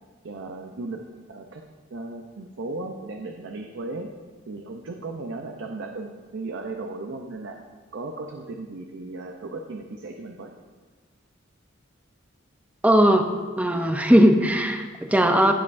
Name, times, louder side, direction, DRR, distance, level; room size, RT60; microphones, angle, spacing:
voice 1, 0.2-1.0 1.3-1.6 1.9-4.1 4.5-7.6 7.9-10.5, right 2 dB, 65° right, 3 dB, 0.6 m, -36 dB
voice 2, 12.8-13.3 13.6-15.5, equal, 5° right, 5 dB, 0.6 m, -18 dB
16.0 x 5.4 x 2.6 m, 1.4 s
head